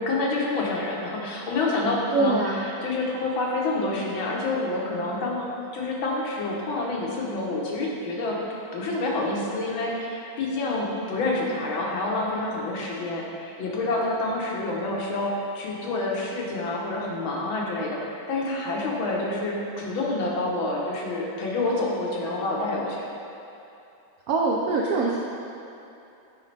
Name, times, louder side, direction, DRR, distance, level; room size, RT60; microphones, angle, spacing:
voice 1, 0.0-5.5 5.7-8.4 8.7-23.1, left 2 dB, 85° left, -3 dB, 1.8 m, -28 dB
voice 2, 2.1-2.6 24.3-25.2, right 3 dB, 80° right, -2 dB, 0.8 m, -23 dB
8.2 x 5.0 x 3.3 m, 2.8 s
omnidirectional pair, 2.1 m